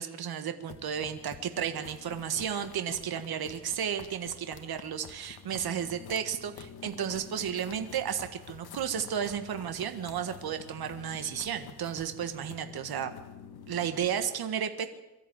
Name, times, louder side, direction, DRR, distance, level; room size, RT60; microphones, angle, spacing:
voice 1, 0.0-13.1 13.7-14.9, right 8 dB, 65° right, 8 dB, 1.7 m, -33 dB
sound 1, 0.6-14.3, left 7 dB, 65° left, 1.9 m, -48 dB
23.5 x 13.5 x 9.0 m, 0.94 s
cardioid pair, 125°, 39 cm